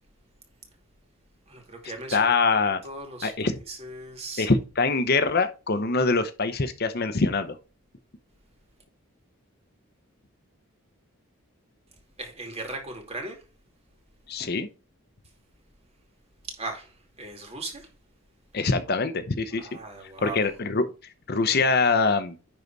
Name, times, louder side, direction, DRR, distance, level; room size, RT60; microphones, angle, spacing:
voice 1, 1.5-2.4 2.8-4.5 12.2-13.4 16.5-16.9 17.2-17.9 19.6-20.4, right 2 dB, 30° right, 2.6 m, -38 dB
voice 2, 2.1-2.8 3.2-3.6 4.4-7.6 14.3-14.7 18.5-19.7 20.0-20.9 21.3-22.3, left 3 dB, 50° left, 0.8 m, -24 dB
10.5 x 4.0 x 4.6 m
head